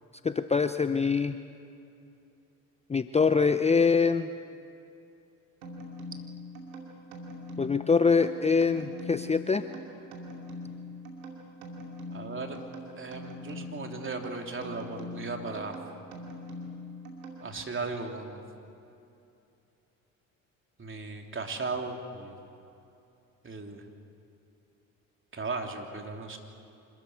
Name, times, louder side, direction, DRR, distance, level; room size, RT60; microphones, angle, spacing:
voice 1, 0.2-1.3 2.9-4.3 7.6-9.6, left 5 dB, 15° left, 11 dB, 0.7 m, -24 dB
sound 1, 5.6-17.8, left 1 dB, 90° right, 2.6 m, -43 dB
voice 2, 12.1-12.6 12.9-15.7 17.4-18.4 20.8-22.3 23.4-23.8 25.3-26.4, right 3 dB, 30° right, 3 dB, 3.4 m, -36 dB
25.5 x 14.0 x 9.4 m, 2.7 s
hypercardioid pair, 60°, 42 cm